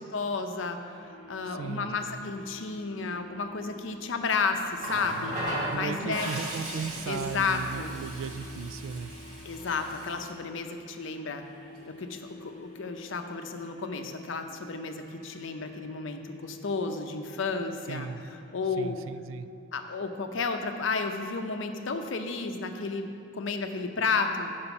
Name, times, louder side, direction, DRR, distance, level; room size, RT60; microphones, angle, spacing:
voice 1, 0.0-5.4 5.7-6.3 7.1-7.9 9.4-11.4 11.9-18.1 18.5-19.0 19.7-24.6, left 4 dB, 65° left, 6 dB, 0.6 m, -32 dB
sound 1, 1.0-19.3, left 2 dB, 40° left, 0.9 m, -51 dB
voice 2, 1.4-2.2 5.7-9.1 17.9-18.2 18.8-19.5, right 5 dB, 70° right, 13 dB, 0.3 m, -36 dB
sound 2, 3.3-10.2, equal, 5° left, 1.0 m, -51 dB
Water tap faucet, 4.8-10.3 11.5-11.7, right 1 dB, 40° right, 1.5 m, -37 dB
7.0 x 5.2 x 6.9 m, 2.7 s
head